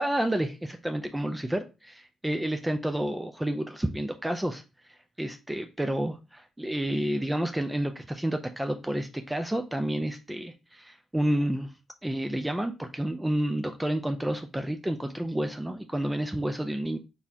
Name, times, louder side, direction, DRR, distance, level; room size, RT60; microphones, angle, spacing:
voice 1, 0.0-11.7 12.0-17.0, right 1 dB, 10° right, 7 dB, 0.4 m, -30 dB
4.1 x 3.5 x 2.7 m, 0.29 s
cardioid pair, 90°, 0 cm